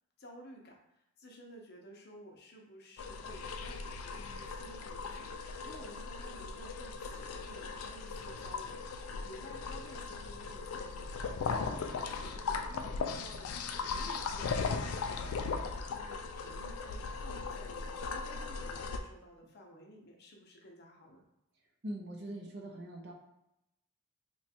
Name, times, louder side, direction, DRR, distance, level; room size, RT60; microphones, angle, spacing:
voice 1, 0.2-11.1 11.4-21.2, equal, 45° left, 0 dB, 0.7 m, -53 dB
sound 1, 3.0-19.0, left 4 dB, 80° left, 0.3 m, -38 dB
voice 2, 21.8-23.1, right 1 dB, 50° right, 0 dB, 0.6 m, -42 dB
3.0 x 2.3 x 4.2 m, 0.85 s
head